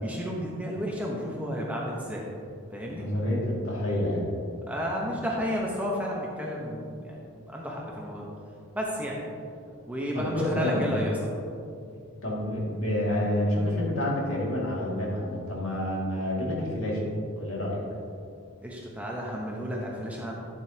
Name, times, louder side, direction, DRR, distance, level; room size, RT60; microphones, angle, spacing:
voice 1, 0.0-2.2 2.7-3.1 4.7-7.2 7.5-8.3 8.7-9.2 9.9-11.4 18.6-20.3, equal, 5° right, -3 dB, 1.0 m, -32 dB
voice 2, 2.9-4.3 10.1-11.0 12.2-17.0 17.3-17.8, left 1 dB, 65° left, -4 dB, 2.3 m, -28 dB
11.5 x 7.7 x 2.9 m, 2.4 s
head